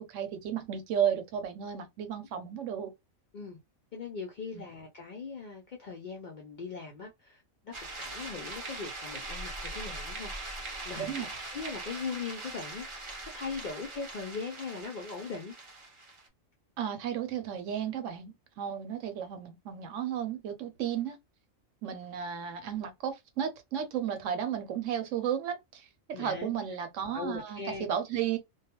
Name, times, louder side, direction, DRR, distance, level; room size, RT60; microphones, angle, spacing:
voice 1, 0.0-2.9 4.5-4.6 11.0-11.3 16.8-21.2 21.8-28.4, right 9 dB, 70° right, 0.9 m, -33 dB
voice 2, 3.9-12.9 13.3-15.5 26.1-26.6 27.1-27.9, left 5 dB, 80° left, 0.4 m, -40 dB
sound 1, 7.7-16.3, right 2 dB, 40° right, 0.4 m, -41 dB
2.3 x 2.2 x 2.8 m
omnidirectional pair, 1.4 m